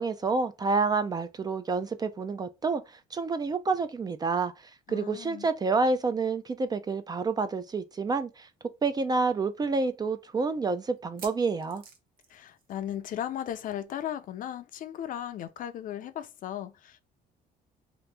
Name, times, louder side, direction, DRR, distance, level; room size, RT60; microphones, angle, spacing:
voice 1, 0.0-8.5 8.8-11.8, right 4 dB, 25° right, 0.3 m, -28 dB
voice 2, 4.9-5.5 12.3-17.0, left 11 dB, 55° left, 0.4 m, -36 dB
sound 1, 8.3-8.4 8.7-8.8 9.4-9.5 11.0-13.1 13.4-13.6 13.8-13.9 15.4-15.5, right 5 dB, 60° right, 0.9 m, -50 dB
2.9 x 2.5 x 3.2 m
cardioid pair, 110°, 17 cm